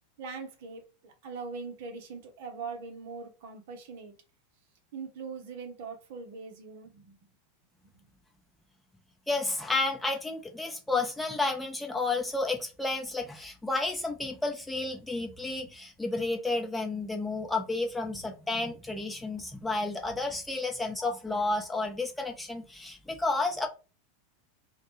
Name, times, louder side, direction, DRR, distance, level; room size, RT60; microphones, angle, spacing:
voice 1, 0.2-4.1 4.9-7.2 8.0-8.1, right 4 dB, 60° right, 0.7 m, -41 dB
voice 2, 9.3-23.7, left 3 dB, 5° left, 0.6 m, -31 dB
2.2 x 2.1 x 3.0 m
hypercardioid pair, 90°, 0 cm